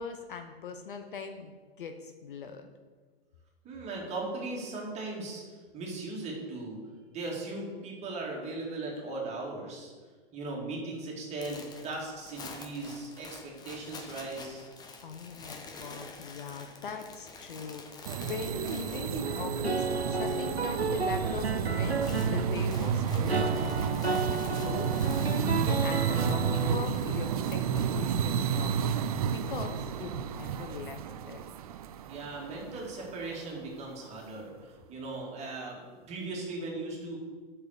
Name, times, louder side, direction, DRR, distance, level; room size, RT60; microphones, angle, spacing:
voice 1, 0.0-2.7 15.0-25.0 25.4-31.0 31.3-31.4, left 5 dB, 55° left, 6 dB, 0.9 m, -41 dB
voice 2, 3.6-5.4 5.7-6.8 7.1-9.9 10.3-14.7 32.1-37.2, right 2 dB, 20° right, -2 dB, 2.5 m, -38 dB
sound 1, 11.4-20.7 20.9-21.3 21.6-28.6, left 4 dB, 15° left, 0.9 m, -49 dB
sound 2, 18.0-33.3, right 7 dB, 40° right, 0.5 m, -31 dB
sound 3, 19.2-26.7, right 3 dB, 90° right, 0.7 m, -33 dB
8.1 x 6.0 x 6.9 m, 1.5 s
figure-of-eight pair, 105°, 31 cm